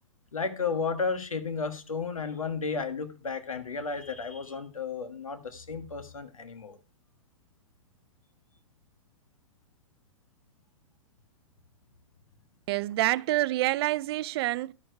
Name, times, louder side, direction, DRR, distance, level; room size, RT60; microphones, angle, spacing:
voice 1, 0.3-6.8, left 5 dB, 85° left, 1.6 m, -33 dB
voice 2, 12.7-14.7, right 17 dB, 50° right, 0.4 m, -27 dB
11.5 x 6.8 x 4.6 m
hypercardioid pair, 110°, 17 cm